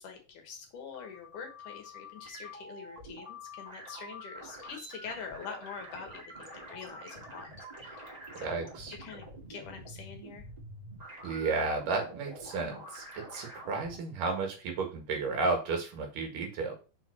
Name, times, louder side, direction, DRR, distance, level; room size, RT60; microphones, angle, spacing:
voice 1, 0.0-7.5 7.8-8.1 8.4-8.5 9.0-10.4, left 6 dB, 70° left, 4 dB, 2.7 m, -45 dB
sound 1, 0.7-14.0, equal, 15° right, 1.6 m, -47 dB
voice 2, 8.4-8.9 11.2-16.7, right 4 dB, 70° right, 3 dB, 3.3 m, -33 dB
6.2 x 4.6 x 5.6 m, 0.33 s
omnidirectional pair, 4.0 m